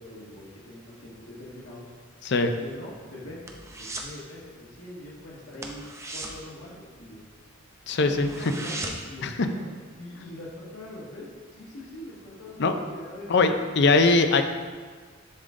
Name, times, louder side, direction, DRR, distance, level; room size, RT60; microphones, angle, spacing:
voice 1, 0.0-1.9 2.6-5.8 6.1-7.2 8.0-9.6 10.0-13.6, left 1 dB, 90° left, -6 dB, 1.6 m, -43 dB
sound 1, 2.7-4.2 4.5-4.8 5.0-5.2 5.5-7.4 7.8-7.9 8.1-9.2 9.6-9.7, right 2 dB, 15° right, 0.6 m, -37 dB
voice 2, 7.9-8.3 9.2-9.5 12.6-12.8 13.3-14.4, left 3 dB, 60° left, 7 dB, 0.6 m, -21 dB
10.5 x 3.7 x 3.7 m, 1.5 s
head